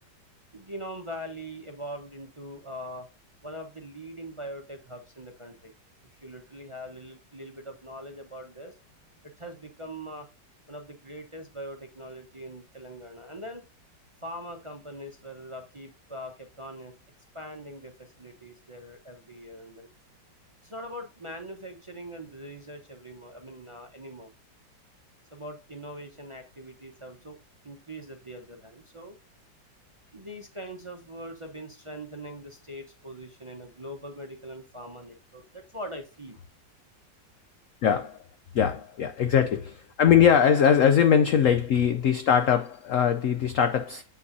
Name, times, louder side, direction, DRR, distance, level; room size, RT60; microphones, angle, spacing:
voice 1, 0.5-3.1 3.4-5.7 6.1-8.7 9.4-10.3 10.7-13.6 14.2-16.9 17.3-19.9 20.6-24.3 25.3-27.4 27.6-29.1 30.1-36.4, equal, 25° right, 0.7 m, -42 dB
voice 2, 37.8-38.2 38.5-44.0, left 8 dB, 75° left, 0.7 m, -21 dB
7.8 x 5.5 x 2.6 m
omnidirectional pair, 2.0 m